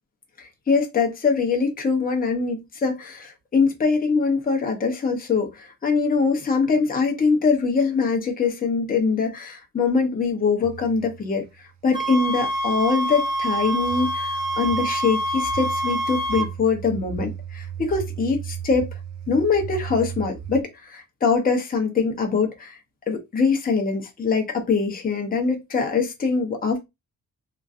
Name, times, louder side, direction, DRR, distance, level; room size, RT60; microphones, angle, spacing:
voice 1, 0.4-18.9 19.3-22.8 23.1-26.8, left 4 dB, 25° left, 0.7 m, -23 dB
sound 1, 10.6-20.6, right 9 dB, 55° right, 0.4 m, -37 dB
sound 2, 11.9-16.5, right 1 dB, 15° right, 0.7 m, -26 dB
2.9 x 2.5 x 2.4 m
wide cardioid pair, 150°, 34 cm